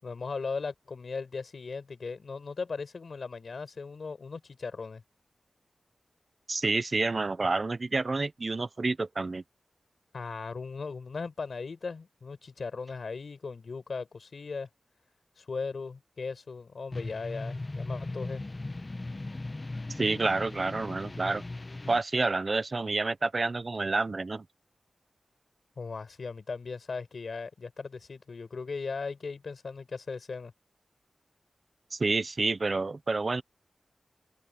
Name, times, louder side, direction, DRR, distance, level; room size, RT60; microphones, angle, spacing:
voice 1, 0.0-5.0 10.1-14.7 15.4-18.4 25.8-30.5, left 4 dB, 60° left, 5.9 m, -38 dB
voice 2, 6.5-9.4 19.9-21.4 21.9-24.4 31.9-33.4, right 3 dB, 40° right, 0.9 m, -29 dB
sound 1, 16.9-22.0, left 2 dB, 30° left, 1.1 m, -38 dB
open air
wide cardioid pair, 100°, 0 cm